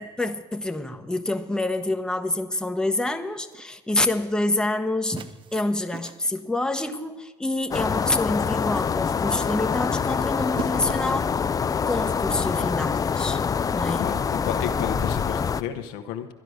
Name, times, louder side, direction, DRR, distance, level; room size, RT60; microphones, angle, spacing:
voice 1, 0.0-11.3 11.9-13.4 13.7-14.1, left 2 dB, 5° left, 6 dB, 0.9 m, -27 dB
sound 1, 3.4-3.7 5.2-6.5 7.5-7.9 8.3-8.8 9.9-11.2, right 8 dB, 40° right, 0.6 m, -41 dB
sound 2, 7.7-15.6, left 6 dB, 30° left, 0.4 m, -25 dB
voice 2, 14.0-16.3, left 10 dB, 80° left, 6 dB, 1.0 m, -32 dB
12.0 x 11.0 x 6.3 m, 1.2 s
supercardioid pair, 75°, 13 cm